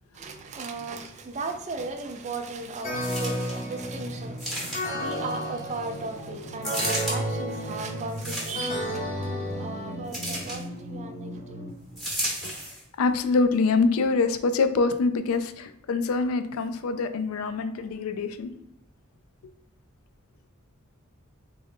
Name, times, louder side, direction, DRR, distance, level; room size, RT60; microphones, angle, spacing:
voice 1, 0.1-12.5, right 3 dB, 35° right, 0.4 m, -37 dB
sound 1, 2.2-11.7, equal, 65° left, 0.7 m, -43 dB
sound 2, 2.8-10.5, equal, 30° left, 0.7 m, -33 dB
sound 3, 3.0-3.6 4.4-5.1 6.6-7.2 8.1-8.8 10.1-10.6 12.0-12.8 13.5-13.6, right 1 dB, ahead, 0.9 m, -32 dB
voice 2, 13.0-18.5, left 4 dB, 85° left, 0.3 m, -25 dB
3.7 x 2.0 x 3.4 m
head